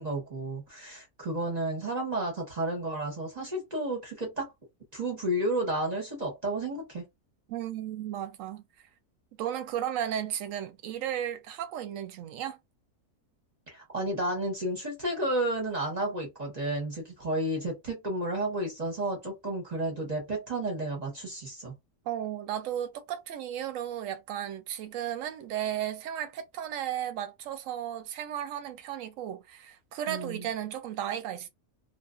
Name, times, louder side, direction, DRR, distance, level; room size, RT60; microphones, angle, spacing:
voice 1, 0.0-4.5 4.9-7.0 13.7-21.7 30.1-30.5, right 1 dB, 35° right, 0.7 m, -32 dB
voice 2, 7.5-8.6 9.4-12.6 22.1-31.5, right 10 dB, 70° right, 0.8 m, -34 dB
2.5 x 2.1 x 2.4 m
omnidirectional pair, 1.6 m